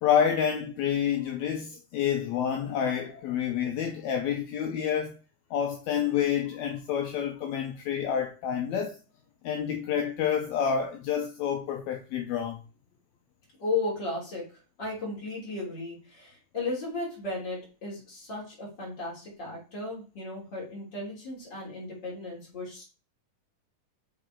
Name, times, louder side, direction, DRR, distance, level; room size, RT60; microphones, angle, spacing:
voice 1, 0.0-5.1 5.5-9.0 9.4-12.6, left 8 dB, 75° left, 1.8 m, -28 dB
voice 2, 13.6-14.5 14.8-22.8, left 3 dB, 35° left, 3.6 m, -35 dB
6.9 x 4.1 x 3.7 m
omnidirectional pair, 3.6 m